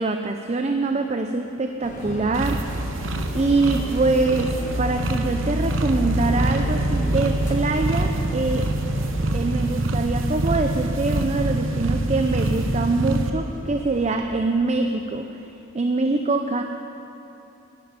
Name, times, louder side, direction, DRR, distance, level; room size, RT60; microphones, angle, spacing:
voice 1, 0.0-2.9 3.3-8.7 9.3-16.6, right 3 dB, 35° right, 5 dB, 0.5 m, -24 dB
sound 1, 1.8-14.2, left 1 dB, 40° left, 1.1 m, -36 dB
Strum, 1.9-8.2, right 1 dB, 55° right, 2.6 m, -44 dB
sound 2, 2.3-13.3, right 1 dB, 75° right, 0.8 m, -25 dB
11.0 x 10.5 x 9.6 m, 2.9 s
head